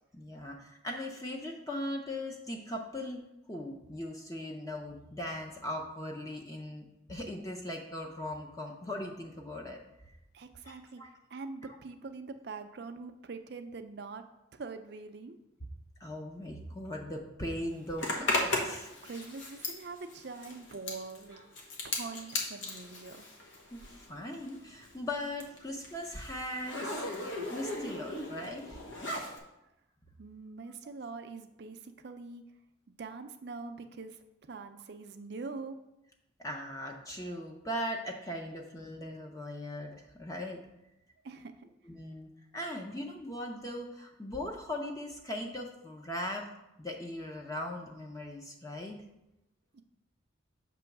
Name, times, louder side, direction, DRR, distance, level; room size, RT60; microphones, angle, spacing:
voice 1, 0.1-3.2 3.5-9.8 10.7-11.1 16.0-18.9 23.7-23.8 24.1-28.8 36.4-40.6 41.9-46.5 46.8-49.0, left 1 dB, 15° left, 1 dB, 0.6 m, -39 dB
voice 2, 10.3-11.0 11.3-14.2 14.5-15.4 19.0-21.4 21.8-23.3 30.2-32.4 33.0-35.8 41.2-41.7 49.7-49.8, right 4 dB, 55° right, 7 dB, 0.5 m, -44 dB
Zipper (clothing), 18.0-24.2 24.4-29.4, left 2 dB, 70° left, 1.1 m, -37 dB
6.8 x 3.0 x 5.8 m, 0.91 s
head